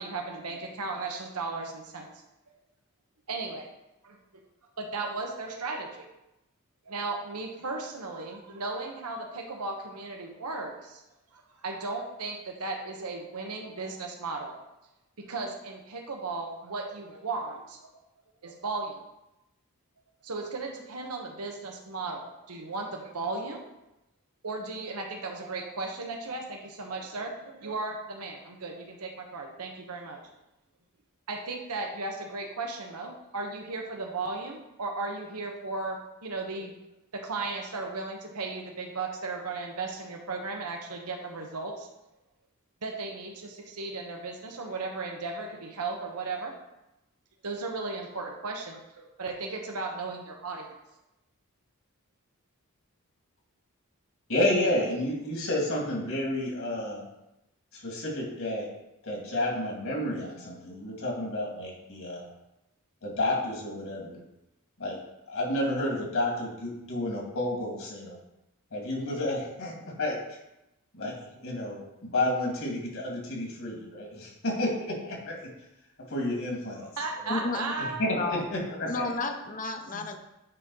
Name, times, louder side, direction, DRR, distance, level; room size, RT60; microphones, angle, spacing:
voice 1, 0.0-2.1 3.3-3.7 4.0-4.2 4.8-6.1 6.9-11.0 11.3-14.6 15.2-17.8 18.4-19.0 20.2-23.7 24.4-30.2 31.3-36.7 37.2-41.9 42.8-46.5 47.4-50.8 76.8-78.0, right 3 dB, 85° right, 2 dB, 1.1 m, -36 dB
voice 2, 54.3-57.0 57.7-58.7 59.0-62.2 63.0-64.2 64.8-65.0 65.3-68.2 68.7-70.2 70.9-75.5 76.1-76.9 77.2-79.1 79.9-80.0, left 1 dB, 60° left, -2 dB, 2.4 m, -31 dB
voice 3, 77.3-77.7 78.1-78.4 78.8-80.2, left 3 dB, 35° left, 5 dB, 0.7 m, -32 dB
9.4 x 3.7 x 5.5 m, 0.91 s
head